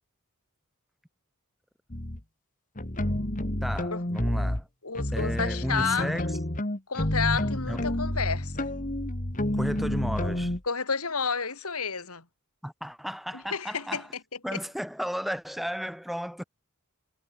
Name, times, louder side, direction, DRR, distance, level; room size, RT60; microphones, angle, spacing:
sound 1, 1.9-2.2 2.8-4.6 4.9-10.6, left 1 dB, 35° left, 2.0 m, -29 dB
voice 1, 3.6-4.7 5.1-6.4 7.7-7.9 9.5-10.5 12.6-14.1 14.4-16.4, equal, ahead, 6.7 m, -34 dB
voice 2, 4.8-6.4 6.9-8.7 10.7-12.2 13.3-14.0, left 5 dB, 85° left, 3.4 m, -31 dB
head